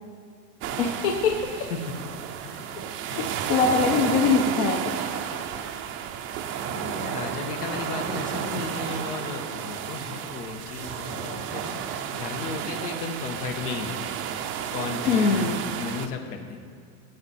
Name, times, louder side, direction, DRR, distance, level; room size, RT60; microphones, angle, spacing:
sound 1, 0.6-16.1, right 8 dB, 30° right, 0.4 m, -32 dB
voice 1, 0.8-1.3 3.1-4.9 15.1-15.6, left 5 dB, 65° left, 3 dB, 1.1 m, -22 dB
voice 2, 1.5-2.0 2.4-3.5 6.6-14.2 14.7-16.6, left 5 dB, 85° left, 4 dB, 1.5 m, -35 dB
15.5 x 6.7 x 4.3 m, 2.3 s
supercardioid pair, 135°, 45 cm